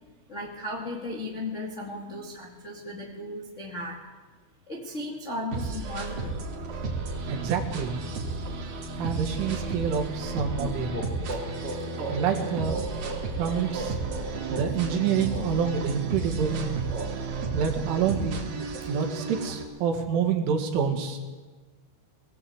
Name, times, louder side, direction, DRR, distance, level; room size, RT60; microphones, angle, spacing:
voice 1, 0.3-4.0 4.7-6.4, left 1 dB, 50° left, -2 dB, 0.8 m, -36 dB
sound 1, 5.5-19.6, right 4 dB, 50° right, 4.0 m, -33 dB
voice 2, 7.3-8.0 9.0-11.0 12.1-12.9 13.4-14.0 14.5-16.6 17.5-18.5 18.9-21.2, right 7 dB, 75° right, 4 dB, 4.3 m, -27 dB
sound 2, 10.6-18.3, right 2 dB, 30° right, 1.1 m, -38 dB
21.5 x 16.5 x 8.0 m, 1.3 s
omnidirectional pair, 5.9 m